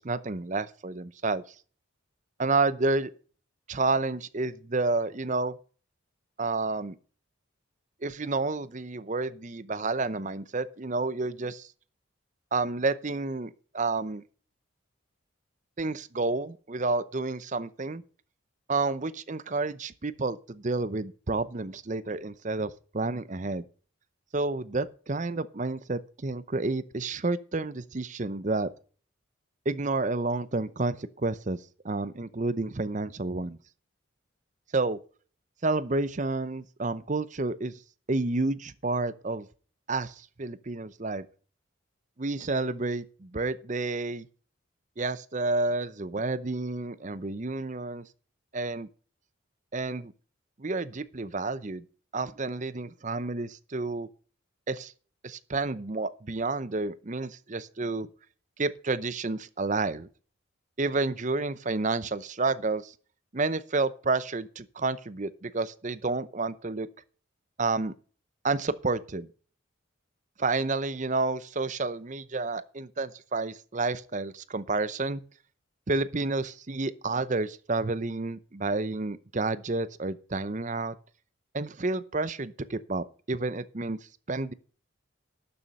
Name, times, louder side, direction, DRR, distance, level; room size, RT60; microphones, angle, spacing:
voice 1, 0.0-1.5 2.4-3.1 3.7-5.6 6.4-6.9 8.0-11.7 12.5-14.2 15.8-18.0 18.7-23.6 24.3-28.7 29.7-31.6 31.8-33.6 34.7-35.0 35.6-37.8 38.1-39.5 39.9-41.3 42.2-44.3 45.0-48.1 48.5-48.9 49.7-50.1 50.6-51.8 52.1-54.1 54.7-54.9 55.2-58.1 58.6-60.1 60.8-62.9 63.3-66.9 67.6-67.9 68.4-69.3 70.4-75.2 75.9-81.0 81.5-84.0 84.3-84.5, right 3 dB, 35° right, 0.7 m, -30 dB
12.0 x 7.1 x 5.4 m
head